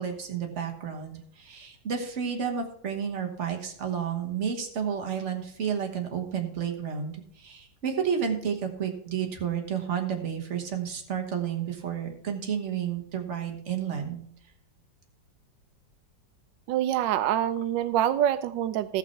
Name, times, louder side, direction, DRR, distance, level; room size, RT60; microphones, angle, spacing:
voice 1, 0.0-14.2, right 7 dB, 45° right, 3 dB, 1.5 m, -31 dB
voice 2, 16.7-19.0, right 11 dB, 90° right, 12 dB, 1.3 m, -25 dB
15.0 x 5.8 x 4.4 m, 0.62 s
omnidirectional pair, 1.9 m